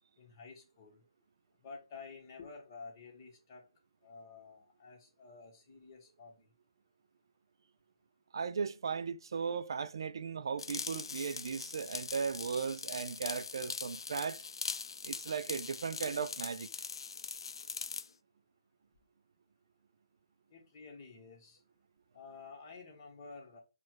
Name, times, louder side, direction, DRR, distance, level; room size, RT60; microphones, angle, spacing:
voice 1, 0.2-1.0 1.6-3.6 4.0-6.5 20.5-21.6 22.1-23.6, left 4 dB, 35° left, 1.2 m, -51 dB
voice 2, 8.3-14.4 15.0-16.7, right 6 dB, 60° right, 0.3 m, -37 dB
sound 1, 10.6-18.1, left 5 dB, 65° left, 0.4 m, -42 dB
4.2 x 2.3 x 4.5 m
figure-of-eight pair, 145°, 3 cm